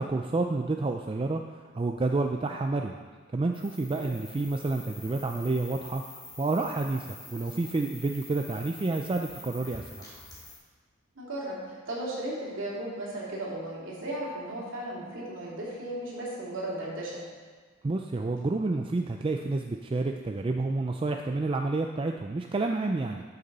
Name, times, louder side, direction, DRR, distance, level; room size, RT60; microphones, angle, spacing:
voice 1, 0.0-1.4 1.7-3.0 3.3-10.1 17.8-23.2, right 3 dB, 25° right, 3 dB, 0.3 m, -29 dB
sound 1, 3.5-10.6, left 2 dB, 20° left, 2.4 m, -47 dB
voice 2, 11.2-17.2, right 1 dB, 60° right, -5 dB, 3.0 m, -36 dB
13.0 x 6.7 x 4.1 m, 1.5 s
head